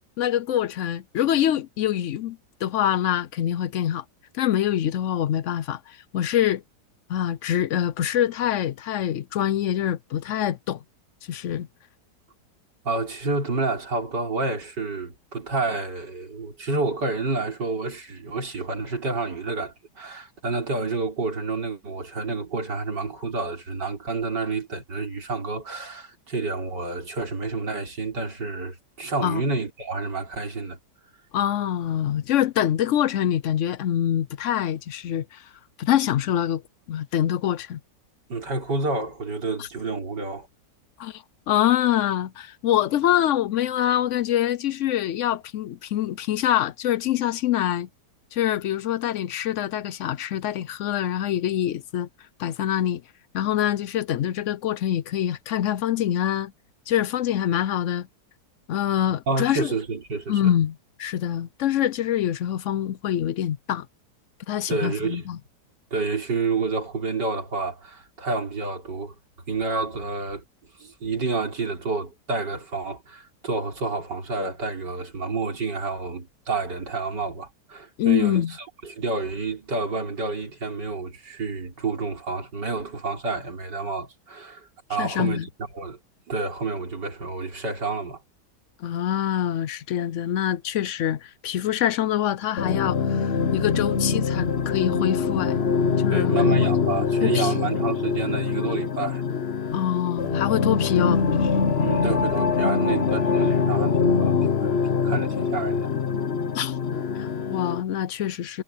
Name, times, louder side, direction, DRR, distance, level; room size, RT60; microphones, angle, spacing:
voice 1, 0.2-4.0 4.3-6.6 7.1-10.8 11.3-11.7 29.2-29.4 31.3-35.5 35.8-36.6 36.9-37.8 39.6-39.7 41.0-47.9 48.3-52.1 52.4-53.0 53.3-56.5 56.9-58.1 58.7-59.7 60.3-63.9 64.5-65.4 78.0-78.5 85.0-85.5 88.8-95.6 96.0-96.8 97.2-97.7 99.7-101.5 106.5-106.8 107.2-108.6, left 11 dB, 75° left, 0.7 m, -25 dB
voice 2, 12.8-30.8 38.3-40.5 59.3-60.5 64.7-65.3 65.9-69.1 69.5-70.4 70.8-78.4 78.8-85.5 85.7-86.0 86.3-88.2 96.1-99.2 101.8-104.8 105.0-105.9, right 3 dB, 75° right, 4.6 m, -29 dB
sound 1, 92.6-107.8, left 5 dB, 45° left, 1.0 m, -24 dB
omnidirectional pair, 1.9 m